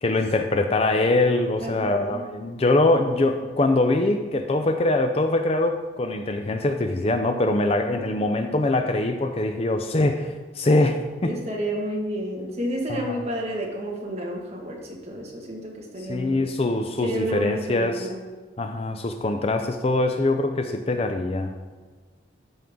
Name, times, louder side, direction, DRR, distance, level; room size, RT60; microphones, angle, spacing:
voice 1, 0.0-11.3 12.9-13.2 16.1-18.1 18.6-21.5, left 2 dB, 30° left, 6 dB, 0.4 m, -23 dB
voice 2, 1.6-2.2 11.2-16.4 17.0-18.2, equal, 35° right, -1 dB, 1.6 m, -31 dB
12.5 x 5.4 x 3.7 m, 1.4 s
head